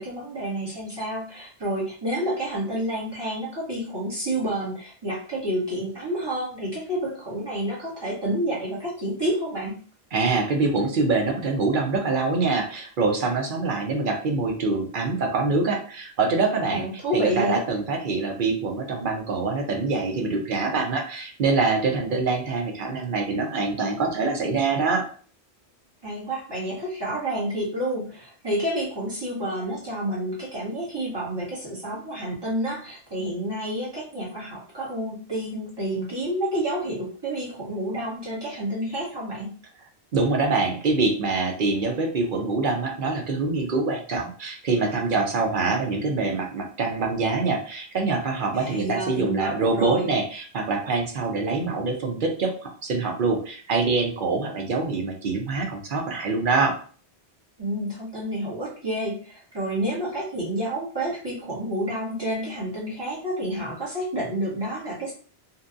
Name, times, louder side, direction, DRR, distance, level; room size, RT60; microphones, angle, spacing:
voice 1, 0.0-9.8 16.7-17.6 26.0-39.5 48.5-50.1 57.6-65.1, right 1 dB, 25° right, -6 dB, 1.0 m, -29 dB
voice 2, 10.1-16.8 17.1-25.0 40.1-56.8, right 3 dB, 60° right, 2 dB, 0.7 m, -25 dB
2.7 x 2.2 x 2.5 m, 0.42 s
omnidirectional pair, 1.1 m